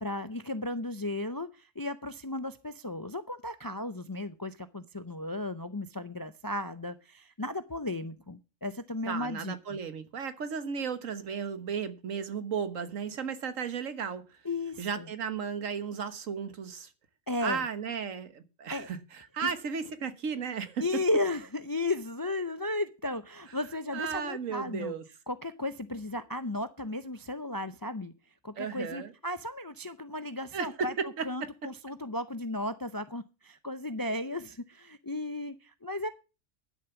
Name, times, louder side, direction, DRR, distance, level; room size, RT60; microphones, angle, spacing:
voice 1, 0.0-9.6 14.4-15.1 17.3-17.6 18.7-18.9 19.4-19.5 20.8-24.9 25.3-28.1 28.4-30.9 31.2-36.1, left 2 dB, 30° left, 0.4 m, -35 dB
voice 2, 9.1-14.2 14.8-16.9 17.4-21.0 23.9-25.0 28.6-29.1 30.5-31.5, right 6 dB, 80° right, 1.6 m, -34 dB
11.5 x 7.0 x 7.0 m
omnidirectional pair, 1.3 m